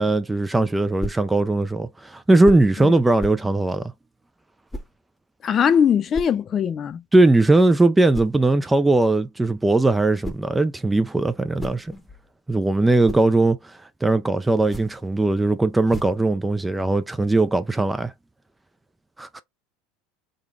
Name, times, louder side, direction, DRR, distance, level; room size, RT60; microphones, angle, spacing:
voice 1, 0.0-3.9 7.1-11.9 12.5-13.6 14.0-18.1 19.2-19.4, right 2 dB, 10° right, 0.3 m, -19 dB
sound 1, 1.0-1.3 2.4-2.7 3.2-3.5 4.7-5.0 6.1-6.4 8.1-8.4 10.0-10.6 11.3-12.3 12.7-13.3 14.5-15.1 15.9-16.3, left 1 dB, 5° left, 0.8 m, -35 dB
voice 2, 5.4-7.0, left 8 dB, 35° left, 0.6 m, -21 dB
3.8 x 2.3 x 3.6 m
supercardioid pair, 110°, 0 cm